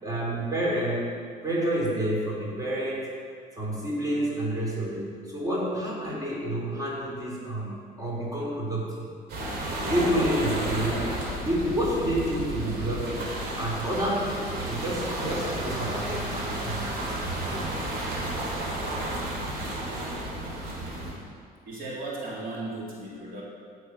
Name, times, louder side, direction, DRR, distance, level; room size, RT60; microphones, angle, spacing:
voice 1, 0.0-3.2 3.6-9.1 9.8-11.1 11.4-13.3 13.6-16.9 17.3-17.7, right 1 dB, 20° right, -4 dB, 3.3 m, -29 dB
sound 1, 9.3-21.1, right 1 dB, 80° right, 3.6 m, -32 dB
voice 2, 21.7-23.4, right 2 dB, 55° right, -5 dB, 3.7 m, -36 dB
16.0 x 6.5 x 5.8 m, 2.1 s
cardioid pair, 110°, 17 cm